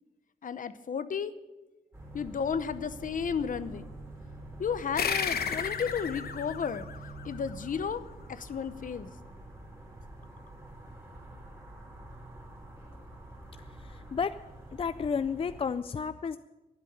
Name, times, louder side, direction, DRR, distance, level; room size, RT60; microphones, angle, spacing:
voice 1, 0.4-1.3 2.1-3.8 4.6-6.9 7.2-8.0 8.3-9.1, left 6 dB, 60° left, 13 dB, 0.8 m, -33 dB
sound 1, 1.9-15.6, right 2 dB, 15° right, 3.7 m, -46 dB
sound 2, 5.0-7.9, left 7 dB, 85° left, 1.1 m, -34 dB
voice 2, 13.8-14.3 14.7-16.4, left 6 dB, 35° left, 13 dB, 0.4 m, -32 dB
12.0 x 9.8 x 8.7 m, 1.1 s
wide cardioid pair, 130°, 16 cm